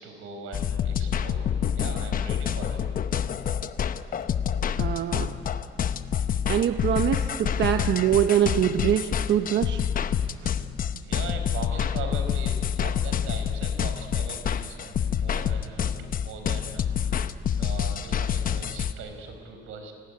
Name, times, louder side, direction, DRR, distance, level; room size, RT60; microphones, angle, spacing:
voice 1, 0.0-1.5 1.7-2.8 11.0-17.2 17.6-19.9, right 5 dB, 90° right, 6 dB, 4.8 m, -40 dB
sound 1, 0.5-18.9, left 8 dB, 45° left, 0.8 m, -27 dB
voice 2, 4.8-5.4 6.5-9.9 10.4-10.5, right 10 dB, 60° right, 7 dB, 1.0 m, -24 dB
28.0 x 19.5 x 9.9 m, 2.2 s
cardioid pair, 155°, 21 cm